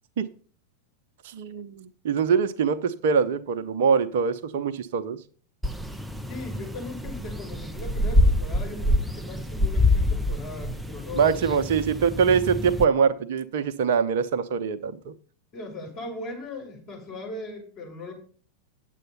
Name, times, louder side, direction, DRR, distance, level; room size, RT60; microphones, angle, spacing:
voice 1, 1.2-5.2 11.1-15.1, right 6 dB, 55° right, 9 dB, 0.8 m, -23 dB
sound 1, 5.6-12.8, left 1 dB, 5° right, 0.5 m, -26 dB
voice 2, 6.3-11.7 15.5-18.1, left 2 dB, 40° left, -1 dB, 5.8 m, -38 dB
9.2 x 7.9 x 5.4 m, 0.42 s
figure-of-eight pair, 90°, 0 cm